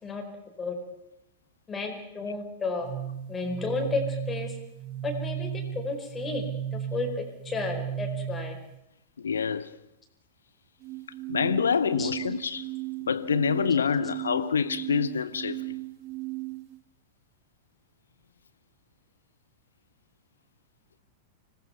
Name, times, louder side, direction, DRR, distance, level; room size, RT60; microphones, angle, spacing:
voice 1, 1.7-2.9 3.3-4.5 5.0-8.6 12.0-12.1, left 3 dB, 15° left, 4.8 m, -32 dB
sound 1, 2.8-8.8 10.8-16.8, right 11 dB, 35° right, 0.9 m, -36 dB
voice 2, 9.2-9.8 11.3-12.7 13.1-15.8, left 6 dB, 70° left, 0.8 m, -26 dB
25.5 x 19.0 x 5.8 m
figure-of-eight pair, 95°, 0 cm